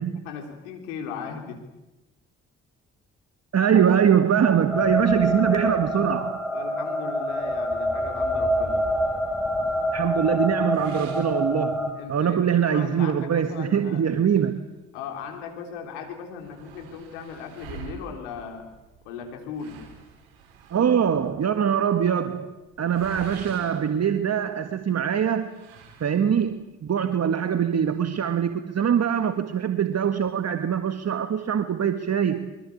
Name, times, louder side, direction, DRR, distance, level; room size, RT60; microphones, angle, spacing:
voice 1, 0.3-1.6 6.5-8.8 11.9-14.1 14.9-18.7 19.0-19.8, left 6 dB, 90° left, 4 dB, 3.8 m, -37 dB
voice 2, 3.5-6.4 9.9-14.6 20.7-25.5 26.0-32.5, right 8 dB, 50° right, 8 dB, 1.7 m, -23 dB
sound 1, 4.7-11.9, equal, ahead, 5.9 m, -26 dB
sound 2, 10.7-12.2 12.6-12.7 13.2-13.3 14.0-15.4 15.7-15.8 16.0-24.8 25.4-26.6, right 7 dB, 90° right, 3.9 m, -47 dB
24.5 x 23.5 x 8.6 m, 1.0 s
hypercardioid pair, 45°, 32 cm